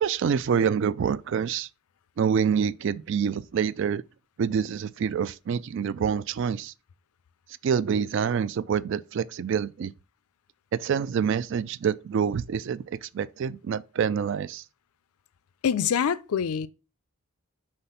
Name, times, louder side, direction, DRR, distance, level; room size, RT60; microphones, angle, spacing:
voice 1, 0.0-1.7 2.2-4.0 4.4-6.7 7.6-9.9 10.7-14.6, right 7 dB, 55° right, 0.3 m, -26 dB
voice 2, 15.6-16.7, left 8 dB, 85° left, 0.4 m, -25 dB
5.7 x 3.3 x 5.6 m
head